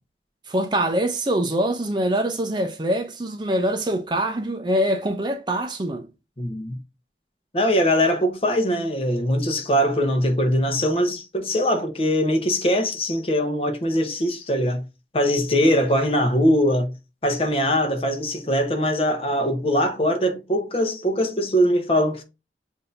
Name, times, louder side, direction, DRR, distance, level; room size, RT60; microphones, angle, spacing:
voice 1, 0.5-6.1, right 1 dB, 25° right, 0.5 m, -24 dB
voice 2, 6.4-6.8 7.5-14.8 15.1-16.9 17.2-22.2, equal, 30° left, 0.9 m, -22 dB
7.5 x 2.7 x 2.5 m
head